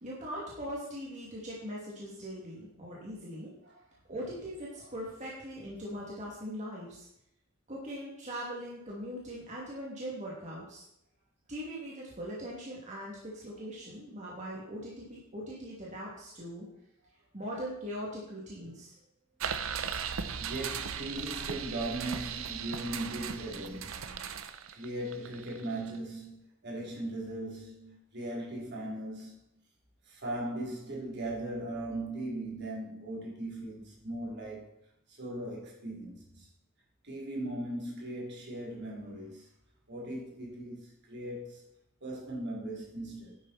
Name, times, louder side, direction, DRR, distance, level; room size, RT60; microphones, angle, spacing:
voice 1, 0.0-3.5 4.1-7.1 7.7-10.8 11.5-16.7 17.3-18.9, equal, 35° right, 2.6 m, -41 dB
sound 1, 19.4-26.0, right 7 dB, 75° right, 0.7 m, -37 dB
voice 2, 20.4-24.3 24.7-29.4 30.0-34.8 35.1-36.5 37.0-39.5 39.9-41.7 42.0-43.4, right 1 dB, 55° right, 3.3 m, -39 dB
10.5 x 8.7 x 4.3 m
head